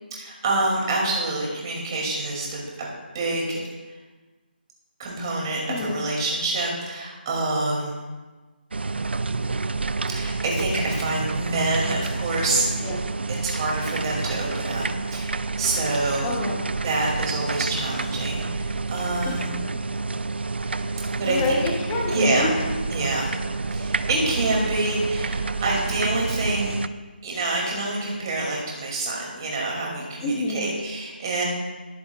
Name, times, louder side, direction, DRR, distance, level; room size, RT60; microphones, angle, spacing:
voice 1, 0.1-2.9 3.1-3.6 5.0-8.0 10.1-12.9 13.3-14.9 15.1-16.4 16.8-19.6 21.2-21.6 22.1-22.5 22.9-23.3 23.7-26.8 27.2-31.4, right 2 dB, 25° right, -2 dB, 2.5 m, -26 dB
voice 2, 5.7-6.0 12.8-13.0 16.2-16.7 19.2-19.4 20.6-21.0 21.3-22.5 30.2-30.7, left 2 dB, 15° left, 0 dB, 0.9 m, -28 dB
sound 1, 8.7-26.9, right 3 dB, 80° right, 0.5 m, -29 dB
19.0 x 8.5 x 2.4 m, 1.3 s
figure-of-eight pair, 170°, 6 cm